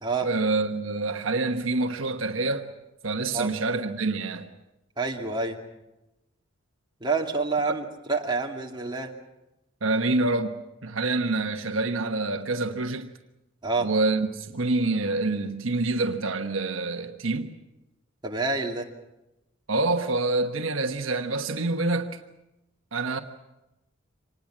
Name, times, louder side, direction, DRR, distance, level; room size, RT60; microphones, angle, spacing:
voice 1, 0.2-2.7 3.0-4.5 9.8-13.1 13.8-17.5 19.7-22.2 22.9-23.2, right 3 dB, 70° right, 1.2 m, -26 dB
voice 2, 5.0-5.6 7.0-9.1 13.6-13.9 18.2-18.9, right 3 dB, 20° right, 2.4 m, -27 dB
25.5 x 19.5 x 7.5 m
head